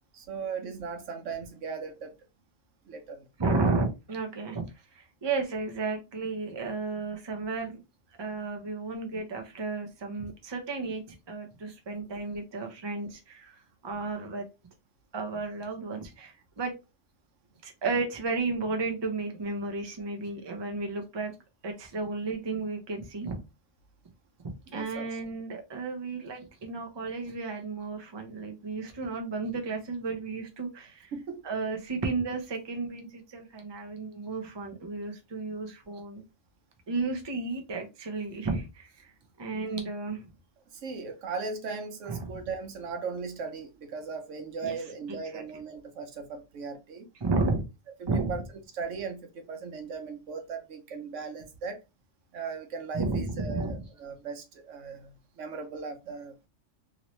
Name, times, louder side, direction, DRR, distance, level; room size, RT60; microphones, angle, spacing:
voice 1, 0.1-2.1 2.9-3.3 24.7-25.1 31.1-31.4 40.7-47.1 48.0-48.4 48.7-51.8 52.3-56.4, right 5 dB, 85° right, 1.1 m, -38 dB
voice 2, 3.4-4.7 4.9-7.8 8.2-14.4 15.1-16.7 17.6-21.3 21.6-23.4 24.7-31.1 31.4-36.2 36.9-39.1 39.4-40.3 42.1-42.3 44.6-44.7 45.1-45.4 47.2-47.6 48.1-48.3 52.9-53.8, right 3 dB, 30° right, 0.6 m, -33 dB
3.0 x 2.7 x 3.0 m
omnidirectional pair, 1.2 m